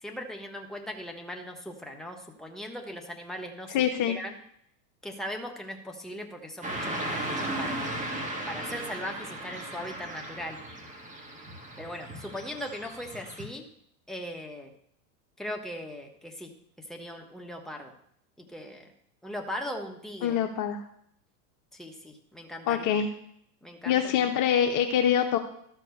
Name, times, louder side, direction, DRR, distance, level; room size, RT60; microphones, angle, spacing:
voice 1, 0.0-3.8 4.1-4.4 5.0-7.9 8.5-10.6 11.8-13.6 14.1-14.7 15.4-17.9 18.4-18.9 19.2-20.4 21.7-22.9 23.6-24.3, equal, ahead, 2 dB, 1.4 m, -39 dB
voice 2, 3.7-4.2 20.2-20.8 22.7-23.1 23.9-25.4, left 9 dB, 40° left, 5 dB, 0.8 m, -25 dB
Car passing by / Traffic noise roadway noise, 6.6-13.4, right 1 dB, 15° right, 2.0 m, -36 dB
12.5 x 4.6 x 6.7 m, 0.70 s
hypercardioid pair, 105°, 48 cm